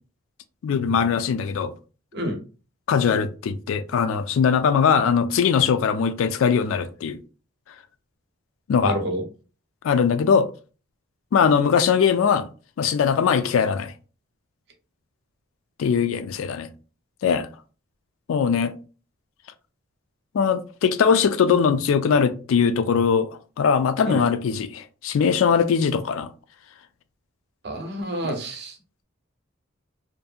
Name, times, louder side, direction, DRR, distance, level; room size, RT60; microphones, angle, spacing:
voice 1, 0.6-1.7 2.9-7.2 8.7-9.0 9.8-10.5 11.3-12.5 12.8-13.9 15.8-16.7 17.2-17.5 18.3-18.7 20.3-26.3, left 6 dB, 70° left, 0.3 m, -21 dB
voice 2, 8.8-9.2 24.1-24.2 27.6-28.8, right 1 dB, 50° right, 0.7 m, -28 dB
2.6 x 2.5 x 2.3 m
head